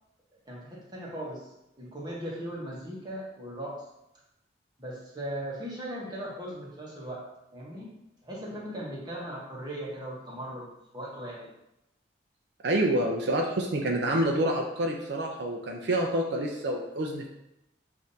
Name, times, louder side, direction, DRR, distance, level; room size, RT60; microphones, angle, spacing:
voice 1, 0.5-1.5 1.8-3.8 4.8-7.3 7.5-8.0 8.2-11.5, right 1 dB, 20° right, -4 dB, 1.0 m, -38 dB
voice 2, 12.6-17.3, right 1 dB, 65° right, 0 dB, 0.5 m, -27 dB
7.0 x 2.6 x 2.7 m, 0.87 s
head